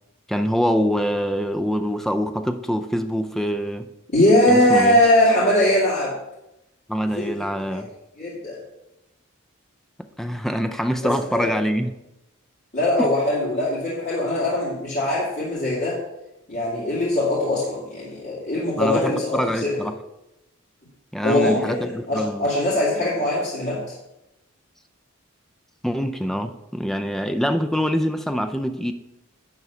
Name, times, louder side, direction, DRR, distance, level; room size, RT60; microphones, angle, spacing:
voice 1, 0.3-3.9 4.5-5.0 6.9-7.9 10.2-11.9 13.0-13.1 18.8-20.0 21.1-22.5 25.8-28.9, equal, ahead, 8 dB, 0.4 m, -24 dB
voice 2, 4.1-6.1 7.1-7.8 8.2-8.6 11.3-11.5 12.7-16.0 16.5-19.8 21.2-23.8, left 1 dB, 45° left, -10 dB, 2.5 m, -21 dB
10.5 x 3.7 x 6.8 m, 0.90 s
head